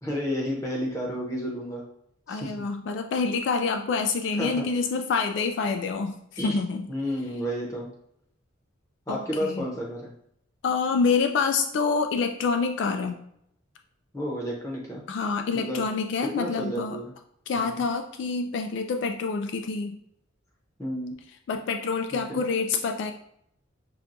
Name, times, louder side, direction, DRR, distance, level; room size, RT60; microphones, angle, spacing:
voice 1, 0.0-1.8 2.3-2.5 4.4-4.5 6.4-6.6 6.9-7.9 9.1-10.1 14.1-15.0 15.5-15.8 16.3-17.1 17.6-17.8 20.8-21.1 22.1-22.4, equal, 15° left, -2 dB, 0.8 m, -31 dB
voice 2, 2.3-6.8 9.1-9.7 10.6-13.2 15.1-17.0 17.5-20.0 21.5-23.1, left 4 dB, 65° left, 6 dB, 0.3 m, -27 dB
5.8 x 2.2 x 2.6 m, 0.72 s
head